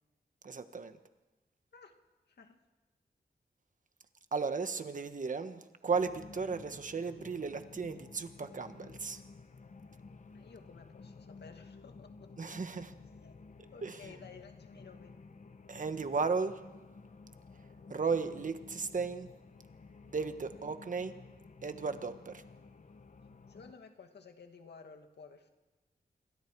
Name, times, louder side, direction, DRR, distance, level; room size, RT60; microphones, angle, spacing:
voice 1, 0.4-1.0 4.3-9.2 12.4-12.9 13.8-14.0 15.7-16.6 17.9-19.3 20.1-21.1 21.6-22.4, right 4 dB, 50° right, 9 dB, 1.4 m, -35 dB
voice 2, 2.3-2.6 10.3-12.6 13.1-13.4 13.7-15.2 20.4-20.7 23.5-25.5, left 5 dB, 85° left, 5 dB, 2.2 m, -55 dB
sound 1, 5.9-23.7, left 4 dB, 45° left, 1.2 m, -54 dB
27.5 x 24.0 x 4.8 m, 1.1 s
wide cardioid pair, 130°, 17 cm